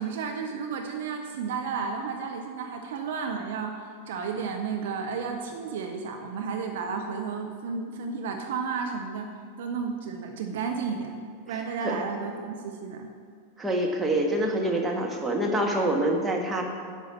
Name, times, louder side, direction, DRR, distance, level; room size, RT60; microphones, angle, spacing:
voice 1, 0.0-11.1 11.5-13.1, right 5 dB, 55° right, 4 dB, 0.8 m, -32 dB
voice 2, 13.6-16.6, right 1 dB, 10° right, 0 dB, 1.4 m, -26 dB
9.7 x 5.6 x 7.3 m, 2.1 s
figure-of-eight pair, 90°, 0 cm